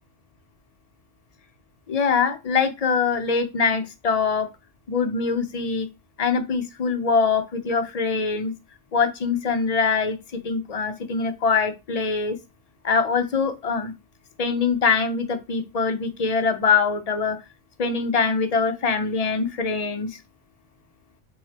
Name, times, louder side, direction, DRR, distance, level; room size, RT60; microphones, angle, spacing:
voice 1, 1.9-4.5 4.9-5.9 6.2-8.5 8.9-12.4 12.8-13.9 14.4-17.4 17.8-20.2, left 5 dB, 45° left, 8 dB, 0.5 m, -23 dB
4.2 x 3.5 x 3.3 m, 0.26 s
omnidirectional pair, 1.2 m